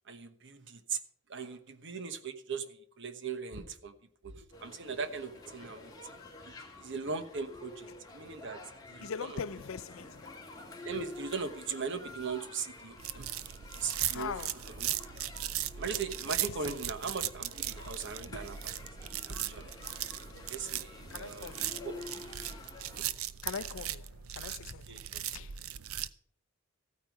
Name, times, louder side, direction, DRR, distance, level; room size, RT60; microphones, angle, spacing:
voice 1, 0.1-1.0 1.3-3.9 4.2-5.9 6.4-8.6 8.9-9.1 10.8-13.3 13.8-14.3 14.8-14.9 15.8-19.6 20.5-22.0 22.9-23.1 24.9-25.0, right 5 dB, 60° right, 1.2 m, -39 dB
sound 1, 4.5-23.1, left 2 dB, 20° left, 2.4 m, -49 dB
voice 2, 9.0-10.4 14.1-14.9 16.4-16.7 21.1-21.8 23.4-25.0 25.3-25.6, left 6 dB, 70° left, 0.5 m, -42 dB
sound 2, 13.0-26.1, right 12 dB, 85° right, 0.6 m, -38 dB
14.5 x 9.2 x 4.8 m
head